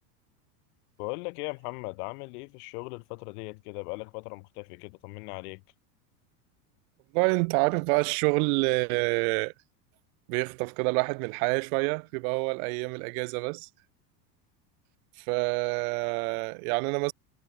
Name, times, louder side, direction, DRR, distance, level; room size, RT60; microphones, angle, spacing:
voice 1, 1.0-5.6, left 29 dB, 65° left, 1.6 m, -38 dB
voice 2, 7.1-9.5 10.3-13.7 15.2-17.1, right 35 dB, 60° right, 1.3 m, -27 dB
supercardioid pair, 130°, 49 cm